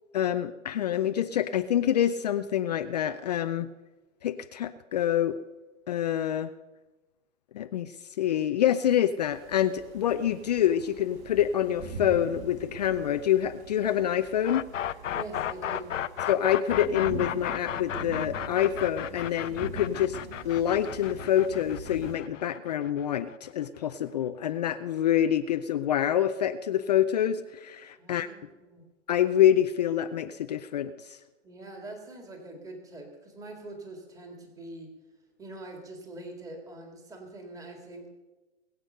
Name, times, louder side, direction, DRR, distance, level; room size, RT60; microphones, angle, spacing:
voice 1, 0.1-3.7 4.2-5.4 5.9-6.5 7.5-14.6 16.3-20.2 20.4-28.3 29.1-31.2, left 10 dB, 35° left, 10 dB, 0.4 m, -26 dB
sound 1, 9.2-22.2, right 3 dB, 45° right, 4.3 m, -43 dB
sound 2, 14.4-24.3, left 10 dB, 80° left, 0.8 m, -34 dB
voice 2, 15.1-15.9 28.0-28.8 31.4-34.9 35.4-38.1, right 2 dB, 10° right, 3 dB, 2.1 m, -43 dB
20.5 x 8.1 x 6.6 m, 1.2 s
hypercardioid pair, 145°, 37 cm